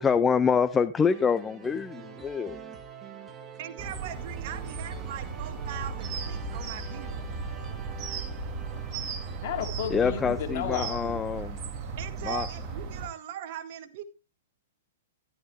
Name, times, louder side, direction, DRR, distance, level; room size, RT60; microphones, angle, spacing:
voice 1, 0.0-2.6 9.9-11.6 12.2-12.5, left 6 dB, 15° left, 0.6 m, -26 dB
sound 1, 1.0-9.7, right 6 dB, 20° right, 1.8 m, -47 dB
voice 2, 3.6-7.3 12.0-14.0, right 10 dB, 55° right, 1.9 m, -40 dB
sound 2, 3.8-13.1, right 4 dB, 40° right, 2.6 m, -36 dB
voice 3, 8.6-9.1 9.4-11.2, left 9 dB, 55° left, 3.3 m, -35 dB
13.0 x 12.5 x 2.4 m
hypercardioid pair, 125°, 0 cm